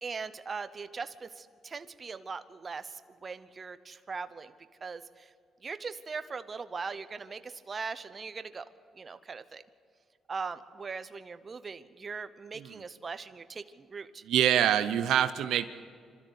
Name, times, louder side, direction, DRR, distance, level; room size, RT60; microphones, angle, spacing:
voice 1, 0.0-4.5 4.8-5.3 5.6-8.6 8.9-9.6 10.3-14.2, right 5 dB, 35° right, 12 dB, 0.8 m, -40 dB
voice 2, 14.3-15.7, right 10 dB, 80° right, 11 dB, 0.7 m, -25 dB
26.5 x 13.0 x 8.3 m, 2.1 s
cardioid pair, 90°, 0 cm